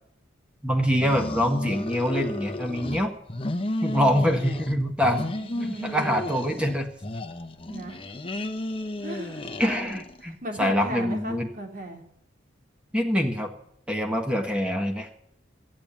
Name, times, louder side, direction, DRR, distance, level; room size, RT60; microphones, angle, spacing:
voice 1, 0.6-3.1 3.8-5.2 5.6-6.9 9.6-11.5 12.9-13.5 13.9-15.1, equal, 5° right, 3 dB, 1.7 m, -25 dB
sound 1, 0.9-3.0 3.3-4.8 5.0-6.8 7.0-10.2, left 1 dB, 30° left, 1.0 m, -33 dB
voice 2, 5.1-6.2 7.7-8.0 9.0-12.0, right 1 dB, 45° right, 2 dB, 3.2 m, -37 dB
14.5 x 8.7 x 8.8 m, 0.69 s
head